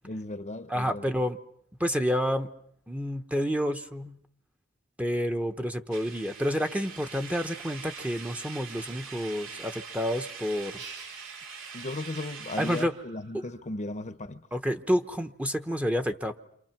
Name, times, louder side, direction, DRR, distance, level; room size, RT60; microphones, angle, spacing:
voice 1, 0.0-1.2 11.7-14.5, left 2 dB, 35° left, 1.0 m, -36 dB
voice 2, 0.7-1.4 1.8-2.5 2.9-4.2 5.0-10.8 12.6-12.9 14.5-16.4, equal, 5° right, 1.1 m, -29 dB
sound 1, 5.9-12.8, right 5 dB, 70° right, 2.5 m, -43 dB
sound 2, 10.8-12.1 12.5-13.8, right 4 dB, 35° right, 2.5 m, -50 dB
29.0 x 27.0 x 6.0 m
head